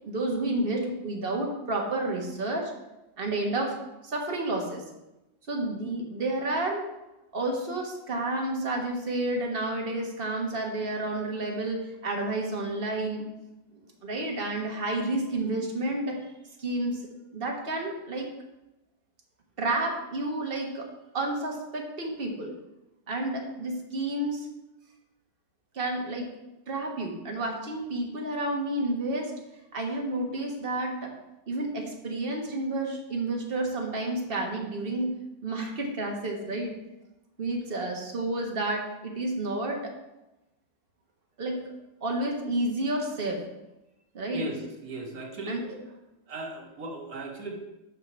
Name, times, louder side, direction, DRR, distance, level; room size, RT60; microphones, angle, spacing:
voice 1, 0.1-2.7 3.2-4.8 5.5-6.9 7.3-13.3 14.0-16.2 16.6-17.0 17.3-18.3 19.6-20.9 21.1-22.5 23.1-24.5 25.7-26.3 26.7-29.3 29.7-31.1 31.5-35.1 35.4-36.7 37.4-39.9 41.4-41.7 42.0-43.4 44.1-44.4 45.5-45.6, right 2 dB, 35° right, 1 dB, 1.3 m, -30 dB
voice 2, 44.3-45.7 46.3-47.7, right 2 dB, 50° right, 0 dB, 1.7 m, -37 dB
6.3 x 5.6 x 5.6 m, 0.96 s
omnidirectional pair, 2.1 m